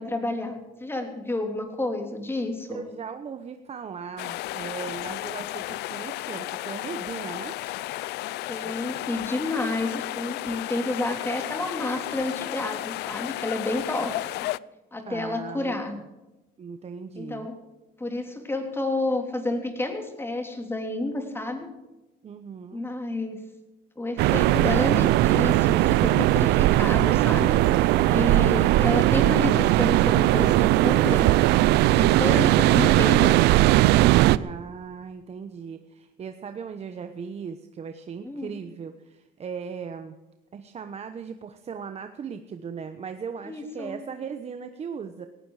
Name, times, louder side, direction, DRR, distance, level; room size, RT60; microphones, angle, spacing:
voice 1, 0.0-2.9 8.5-14.5 14.9-16.0 17.1-17.6 18.0-21.7 22.7-23.4 24.0-31.3 31.9-33.4 38.2-38.5 43.4-44.0, left 2 dB, 15° left, 4 dB, 3.3 m, -30 dB
voice 2, 2.7-7.6 15.1-15.8 16.6-17.5 22.2-22.8 34.4-40.2 40.5-45.3, right 6 dB, 40° right, 8 dB, 1.0 m, -38 dB
sound 1, 4.2-14.6, left 17 dB, 80° left, 0.4 m, -33 dB
sound 2, 24.2-34.4, right 16 dB, 85° right, 0.5 m, -19 dB
18.0 x 15.5 x 4.9 m, 1.1 s
cardioid pair, 110°, 17 cm